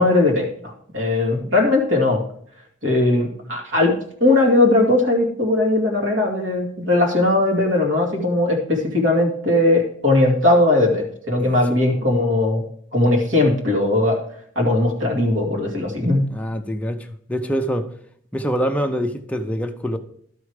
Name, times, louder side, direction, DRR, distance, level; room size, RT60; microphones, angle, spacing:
voice 1, 0.0-2.2 2.8-4.0 4.2-12.6 12.9-14.2 14.6-16.2, left 2 dB, 70° right, 2.3 m, -19 dB
voice 2, 11.4-11.7 16.3-17.9 18.3-20.0, equal, 5° left, 0.6 m, -25 dB
12.0 x 4.8 x 4.8 m
head